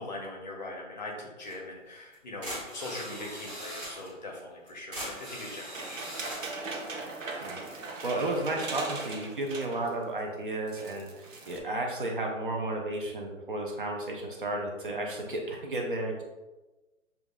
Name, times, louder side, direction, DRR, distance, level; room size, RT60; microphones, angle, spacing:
voice 1, 0.0-6.0, left 2 dB, 35° left, -1 dB, 0.7 m, -41 dB
sound 1, 1.4-1.6 2.1-2.2 2.4-4.1 4.7-6.6, equal, 10° right, 0.8 m, -40 dB
sound 2, 5.7-10.0 10.3-10.4 10.7-11.6, right 3 dB, 75° right, 1.0 m, -39 dB
voice 2, 7.4-16.2, right 2 dB, 40° right, 0 dB, 0.5 m, -33 dB
6.7 x 2.4 x 2.2 m, 1.1 s
hypercardioid pair, 160°, 40 cm